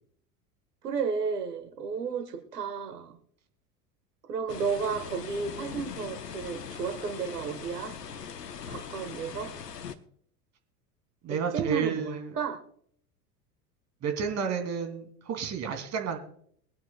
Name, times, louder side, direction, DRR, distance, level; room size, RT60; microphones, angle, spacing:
voice 1, 0.8-3.2 4.3-7.9 8.7-9.5 11.3-12.6, right 6 dB, 80° right, 6 dB, 1.6 m, -33 dB
sound 1, 4.5-10.0, left 7 dB, 80° left, 1.0 m, -41 dB
voice 2, 11.2-12.3 14.0-16.2, right 6 dB, 35° right, 6 dB, 2.6 m, -31 dB
23.0 x 9.4 x 2.2 m, 0.62 s
figure-of-eight pair, 80°, 47 cm